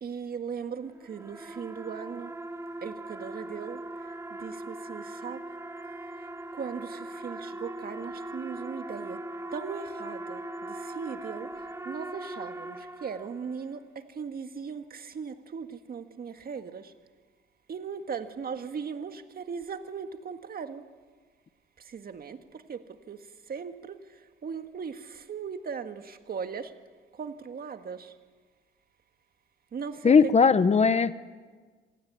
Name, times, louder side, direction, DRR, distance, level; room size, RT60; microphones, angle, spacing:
voice 1, 0.0-2.3 2.8-3.8 4.4-5.4 6.6-9.2 9.5-11.5 11.9-13.8 14.2-16.9 17.7-20.8 21.9-22.4 22.7-22.8 23.1-23.2 23.5-24.0 24.4-26.7 27.2-28.1 29.7-30.2, right 6 dB, 50° right, 8 dB, 1.8 m, -38 dB
sound 1, 0.9-13.6, right 1 dB, 15° right, 1.2 m, -40 dB
voice 2, 30.0-31.2, left 5 dB, 35° left, 14 dB, 0.9 m, -19 dB
26.5 x 18.0 x 9.6 m, 1.5 s
cardioid pair, 90°, 20 cm